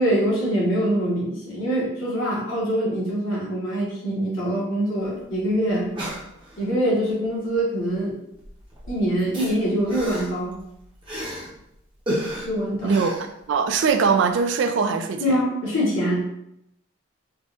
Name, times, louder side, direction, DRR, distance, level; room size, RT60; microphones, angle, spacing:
voice 1, 0.0-5.9 6.6-8.2 8.9-10.6 12.4-13.0 15.2-16.3, equal, 75° left, -6 dB, 1.2 m, -24 dB
sound 1, 5.0-5.1 5.3-5.4 5.7-6.8 7.8-8.1 8.4-11.6 12.1-13.9 14.3-14.4, equal, 25° right, 0.7 m, -33 dB
voice 2, 12.8-13.2 13.5-15.2, right 5 dB, 60° right, 7 dB, 0.3 m, -21 dB
3.9 x 2.3 x 2.4 m, 0.80 s
head